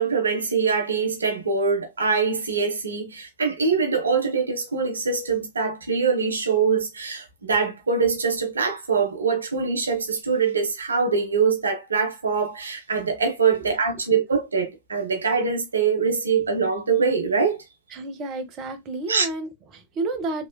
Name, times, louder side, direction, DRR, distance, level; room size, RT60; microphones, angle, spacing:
voice 1, 0.0-17.6 19.1-19.3, right 5 dB, 75° right, 0.6 m, -23 dB
voice 2, 17.9-20.5, right 2 dB, 35° right, 0.8 m, -31 dB
3.0 x 3.0 x 2.2 m
figure-of-eight pair, 90°, 0 cm